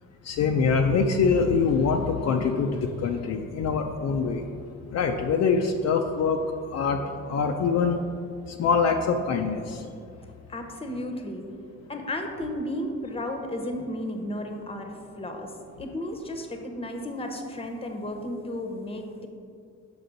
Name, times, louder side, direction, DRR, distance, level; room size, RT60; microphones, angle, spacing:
voice 1, 0.2-4.4 4.9-6.4 6.7-7.0 7.3-8.0 8.5-9.9, left 5 dB, 60° left, 3 dB, 0.5 m, -24 dB
voice 2, 10.5-11.4 11.9-15.5 15.8-19.3, left 1 dB, 20° left, 4 dB, 0.9 m, -33 dB
6.9 x 5.3 x 3.9 m, 2.4 s
cardioid pair, 90°, 30 cm